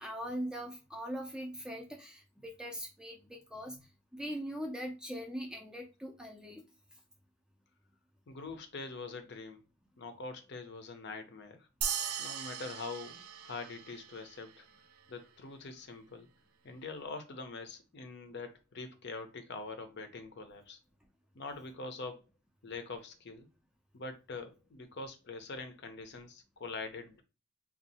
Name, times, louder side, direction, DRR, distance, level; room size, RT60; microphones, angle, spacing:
voice 1, 0.0-3.9 4.1-6.6, equal, 5° right, 0.4 m, -41 dB
voice 2, 8.3-9.6 10.0-11.7 12.2-14.6 15.1-16.3 16.6-20.8 21.3-22.2 22.6-23.5 23.9-27.2, left 3 dB, 50° left, 0.6 m, -44 dB
sound 1, 11.8-14.6, right 8 dB, 90° right, 0.5 m, -39 dB
2.7 x 2.4 x 4.1 m
head